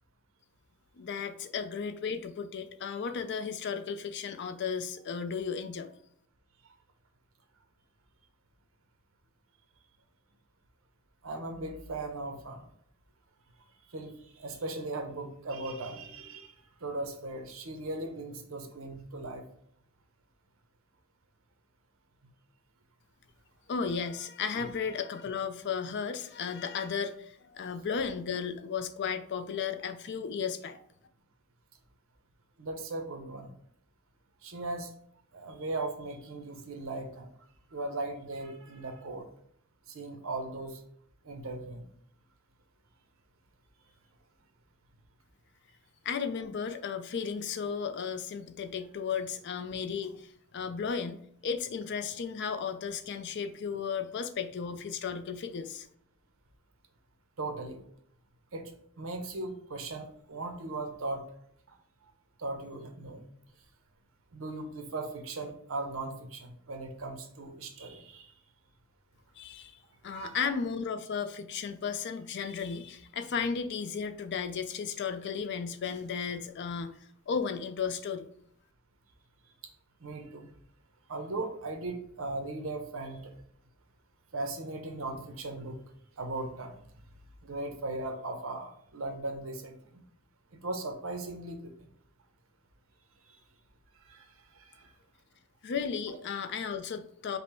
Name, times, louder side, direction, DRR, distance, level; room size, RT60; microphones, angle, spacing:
voice 1, 1.0-5.9 23.7-30.8 46.0-55.9 69.4-76.9 77.3-78.3 95.6-97.4, left 6 dB, 55° left, 9 dB, 0.4 m, -34 dB
voice 2, 11.2-12.7 13.9-16.5 16.8-19.4 24.6-24.7 27.6-27.7 32.6-33.5 34.4-34.9 35.3-37.3 37.7-39.3 39.9-40.8 41.2-41.8 57.4-57.8 58.5-58.7 59.0-61.2 61.7-61.8 62.4-63.2 64.3-68.3 70.1-70.5 80.0-80.5 81.1-83.3 84.3-85.8 86.2-86.8 87.4-90.0 90.6-91.9 93.3-93.4 94.0-94.9, right 2 dB, 70° right, 5 dB, 0.8 m, -38 dB
5.2 x 2.1 x 4.3 m, 0.66 s
head